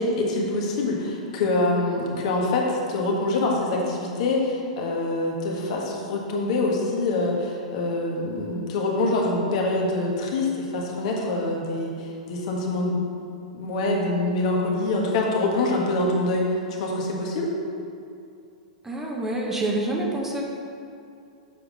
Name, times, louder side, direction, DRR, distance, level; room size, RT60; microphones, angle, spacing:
voice 1, 0.0-13.0 13.5-17.5, left 2 dB, 55° left, -1 dB, 1.6 m, -25 dB
voice 2, 18.8-20.4, right 2 dB, 10° right, -2 dB, 1.1 m, -27 dB
7.4 x 5.0 x 5.0 m, 2.6 s
hypercardioid pair, 110°, 4 cm